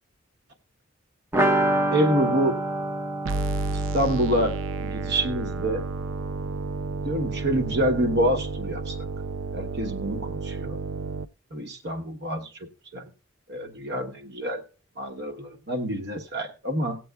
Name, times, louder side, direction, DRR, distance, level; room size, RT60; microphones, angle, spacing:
sound 1, 1.3-6.9 7.2-7.3 7.6-7.7, right 1 dB, 10° right, 0.6 m, -28 dB
voice 1, 1.9-2.6 3.9-5.8 7.0-9.0 9.5-10.8 11.5-12.5 12.9-13.1 13.5-14.6 15.0-17.0, equal, 55° right, 1.1 m, -27 dB
sound 2, 3.3-11.3, right 4 dB, 70° right, 0.4 m, -31 dB
18.5 x 7.7 x 2.3 m
head